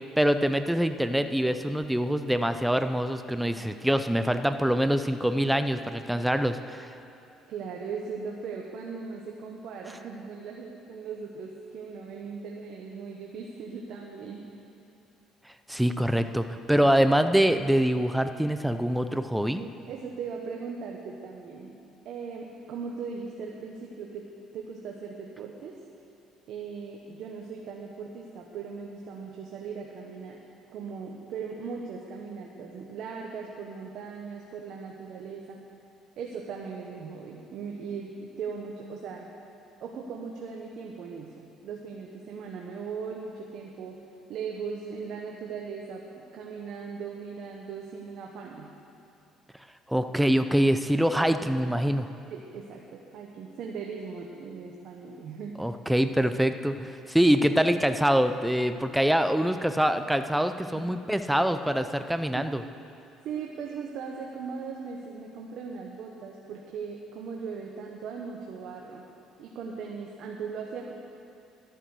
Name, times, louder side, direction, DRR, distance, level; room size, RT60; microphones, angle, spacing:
voice 1, 0.2-6.9 15.7-19.6 49.9-52.1 55.6-62.6, equal, 5° right, 9 dB, 0.6 m, -24 dB
voice 2, 7.5-14.5 19.6-21.8 22.0-24.3 24.5-25.7 26.5-30.4 30.7-35.6 36.2-39.3 39.8-44.0 44.3-48.7 50.3-50.4 52.3-55.6 60.7-60.9 62.3-62.5 63.2-69.0 69.4-70.9, right 5 dB, 65° right, -1 dB, 1.2 m, -38 dB
12.0 x 10.0 x 6.3 m, 2.6 s
supercardioid pair, 85°, 0 cm